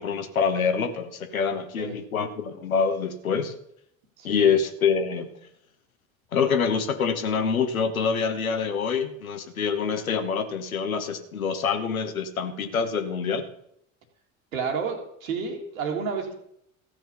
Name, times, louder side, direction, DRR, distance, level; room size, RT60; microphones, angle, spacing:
voice 1, 0.0-3.5 4.2-5.3 6.3-13.5, left 6 dB, 80° left, 8 dB, 1.2 m, -26 dB
voice 2, 4.2-4.5 14.5-16.4, right 5 dB, 70° right, 3 dB, 2.1 m, -30 dB
14.5 x 6.0 x 6.8 m, 0.73 s
figure-of-eight pair, 70°, 41 cm